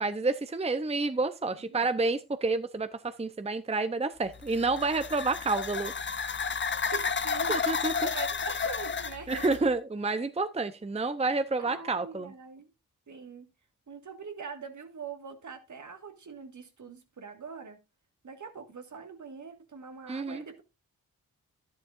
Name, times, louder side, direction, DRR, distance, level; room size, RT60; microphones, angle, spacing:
voice 1, 0.0-5.9 7.5-7.9 9.3-12.3 20.1-20.4, right 3 dB, 20° right, 0.7 m, -29 dB
sound 1, 4.3-9.6, left 5 dB, 35° left, 0.7 m, -32 dB
voice 2, 6.9-7.7 8.0-9.4 11.6-12.7 13.1-13.5 13.9-17.8 18.2-20.6, right 5 dB, 55° right, 1.8 m, -43 dB
11.5 x 10.0 x 2.5 m
cardioid pair, 50°, 35 cm